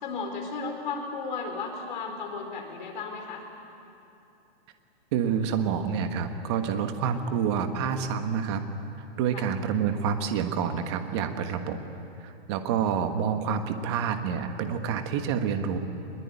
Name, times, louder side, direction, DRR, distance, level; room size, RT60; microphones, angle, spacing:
voice 1, 0.0-3.4 9.3-9.5, left 4 dB, 50° left, 3 dB, 4.4 m, -34 dB
voice 2, 5.1-8.6 9.2-11.8 12.2-15.8, right 7 dB, 25° right, 7 dB, 1.4 m, -28 dB
24.5 x 21.5 x 9.9 m, 2.8 s
hypercardioid pair, 170°, 32 cm